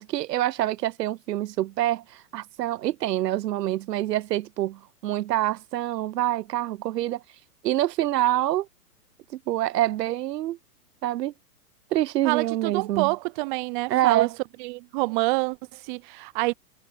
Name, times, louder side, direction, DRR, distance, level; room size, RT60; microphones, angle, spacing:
voice 1, 0.0-7.2 7.6-8.7 9.5-10.6 11.0-11.3 11.9-13.1 13.9-14.3, right 14 dB, 85° right, 0.5 m, -26 dB
voice 2, 12.2-14.3 14.6-16.5, right 25 dB, 30° right, 0.7 m, -27 dB
hypercardioid pair, 130°, 48 cm